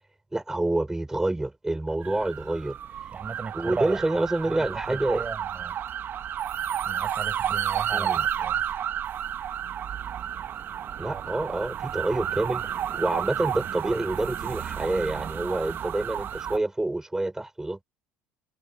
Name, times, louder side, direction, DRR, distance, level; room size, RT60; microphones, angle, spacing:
voice 1, 0.3-2.8 3.5-5.2 7.9-8.3 11.0-12.7 12.9-17.8, right 2 dB, 10° right, 5.2 m, -27 dB
sound 1, 2.0-16.6, right 10 dB, 50° right, 1.6 m, -31 dB
voice 2, 3.1-4.0 4.5-5.8 6.9-8.6 11.0-11.2, right 4 dB, 25° right, 6.8 m, -36 dB
hypercardioid pair, 70°, 5 cm